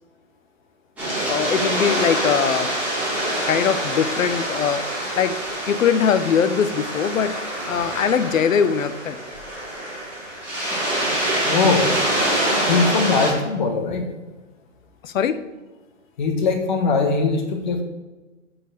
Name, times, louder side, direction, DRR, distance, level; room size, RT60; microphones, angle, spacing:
sound 1, 1.0-13.3, right 1 dB, 5° right, 1.4 m, -25 dB
voice 1, 1.3-2.7 3.5-5.4 5.7-7.3 7.7-9.2 15.0-15.4, left 7 dB, 80° left, 13 dB, 0.8 m, -21 dB
voice 2, 11.4-11.9 12.7-14.1 16.2-17.8, left 4 dB, 35° left, 4 dB, 1.2 m, -20 dB
6.7 x 4.4 x 6.5 m, 1.2 s
hypercardioid pair, 170°, 39 cm